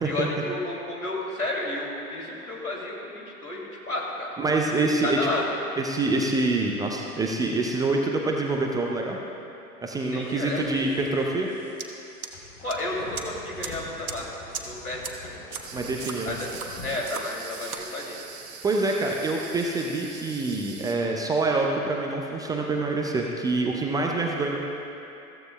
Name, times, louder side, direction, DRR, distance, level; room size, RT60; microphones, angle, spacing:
voice 1, 0.0-4.3 5.0-5.4 10.1-11.0 12.6-15.4 16.3-16.5 16.8-18.2, left 2 dB, 80° left, -2 dB, 2.7 m, -32 dB
voice 2, 4.4-5.2 5.8-9.2 9.8-11.5 15.7-16.4 18.6-24.6, right 3 dB, 10° right, 0 dB, 0.5 m, -26 dB
sound 1, 10.2-17.9, left 2 dB, 50° left, 3.6 m, -46 dB
sound 2, 11.8-11.9 12.2-12.7 13.2-13.3 13.6-13.7 14.1-14.2 14.5-14.6 15.0-15.1 15.5-15.6 16.0-16.7 17.1-17.2 17.5-17.8, right 6 dB, 75° right, 1.3 m, -35 dB
sound 3, 15.6-20.9, right 5 dB, 35° right, 2.5 m, -43 dB
22.0 x 15.0 x 2.2 m, 2.9 s
figure-of-eight pair, 95°, 44 cm